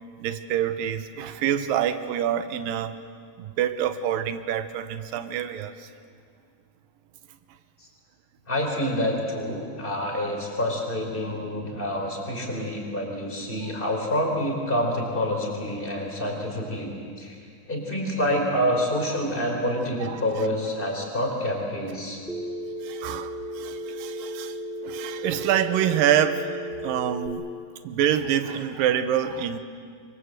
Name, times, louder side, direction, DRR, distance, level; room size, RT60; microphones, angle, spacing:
voice 1, 0.2-2.9 3.4-5.9 20.1-20.2 22.8-24.6 24.8-26.5 26.8-27.5 27.8-29.6, right 10 dB, 85° right, 10 dB, 2.7 m, -26 dB
voice 2, 8.5-17.4 17.7-22.2, equal, 15° left, 1 dB, 4.5 m, -27 dB
Telephone, 22.3-27.3, equal, ahead, 1.6 m, -35 dB
27.5 x 23.5 x 8.1 m, 2.2 s
omnidirectional pair, 3.9 m